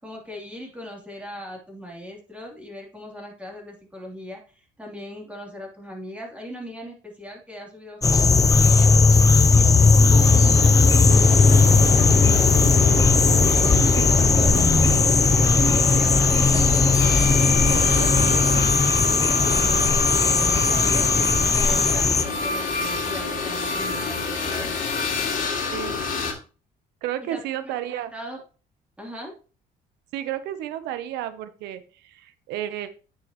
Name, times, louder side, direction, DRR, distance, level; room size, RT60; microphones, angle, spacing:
voice 1, 0.0-8.9 9.2-12.9 13.4-14.9 15.4-18.5 19.0-25.0 27.3-28.4 29.0-29.3, left 1 dB, 5° right, -1 dB, 3.0 m, -39 dB
sound 1, 8.0-22.2, left 4 dB, 20° left, 0.7 m, -17 dB
sound 2, 10.1-18.6, right 3 dB, 40° right, 2.8 m, -31 dB
sound 3, 11.1-26.3, left 4 dB, 55° left, 2.4 m, -29 dB
voice 2, 27.0-28.1 30.1-32.9, right 12 dB, 85° right, 12 dB, 0.8 m, -32 dB
9.3 x 6.5 x 3.0 m, 0.35 s
cardioid pair, 110°, 17 cm